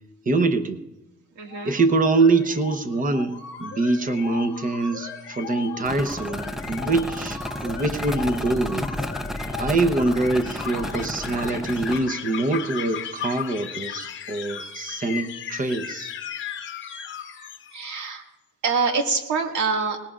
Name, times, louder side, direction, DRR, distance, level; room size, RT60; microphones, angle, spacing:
voice 1, 0.3-0.8 1.6-8.9 9.6-16.1, right 3 dB, 30° right, 9 dB, 0.9 m, -24 dB
voice 2, 1.4-1.8 17.7-18.2 18.6-20.0, right 4 dB, 75° right, 3 dB, 2.1 m, -25 dB
sound 1, 1.5-18.0, left 8 dB, 40° left, 0.8 m, -37 dB
sound 2, 5.8-12.0, left 1 dB, ahead, 0.5 m, -32 dB
20.0 x 19.5 x 2.5 m, 1.0 s
cardioid pair, 170°, 29 cm